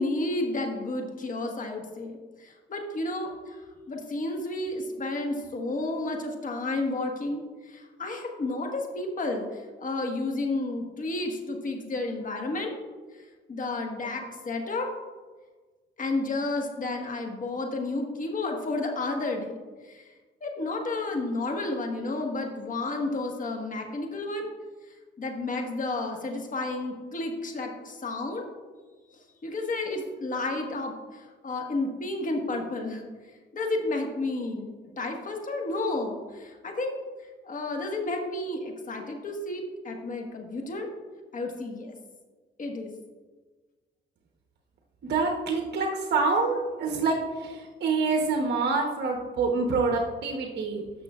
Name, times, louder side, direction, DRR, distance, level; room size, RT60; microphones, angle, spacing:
voice 1, 0.0-12.7 13.5-14.9 16.0-20.1 20.4-24.5 25.2-28.5 29.1-33.1 33.5-37.0 37.4-40.9 41.3-42.0 42.6-42.9, left 2 dB, 40° left, 2 dB, 1.5 m, -31 dB
voice 2, 45.1-47.1 47.8-50.8, right 4 dB, 60° right, 1 dB, 1.0 m, -26 dB
14.0 x 5.9 x 2.4 m, 1.4 s
cardioid pair, 90°, 20 cm